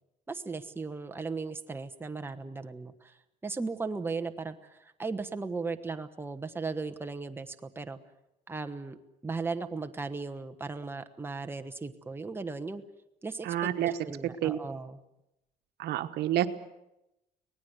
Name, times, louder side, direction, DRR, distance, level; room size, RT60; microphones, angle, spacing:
voice 1, 0.3-3.1 3.4-8.0 8.5-9.0 9.2-12.8 13.2-15.0, right 4 dB, 15° right, 7 dB, 1.2 m, -37 dB
voice 2, 13.4-13.9 14.4-14.6 15.8-16.5, right 12 dB, 75° right, 9 dB, 1.2 m, -28 dB
25.0 x 18.5 x 8.1 m, 0.91 s
cardioid pair, 110°, 17 cm